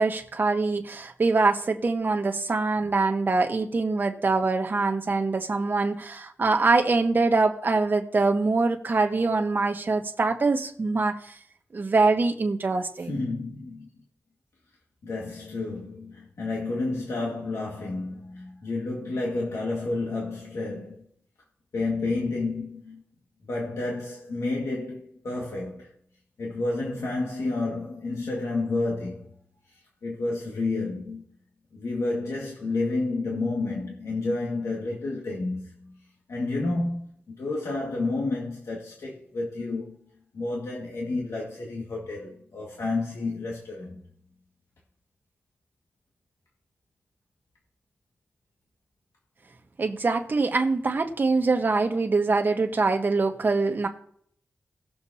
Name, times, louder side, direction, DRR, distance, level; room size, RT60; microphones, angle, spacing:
voice 1, 0.0-11.3 11.7-13.1 49.8-53.9, right 3 dB, 40° right, 1.2 m, -24 dB
voice 2, 13.0-13.9 15.0-21.1 21.7-23.0 23.5-25.9 26.4-29.3 29.7-31.2 31.7-36.0 36.3-40.0 40.3-44.0, left 2 dB, 85° left, 1.9 m, -30 dB
18.5 x 6.9 x 2.8 m
wide cardioid pair, 140°, 5 cm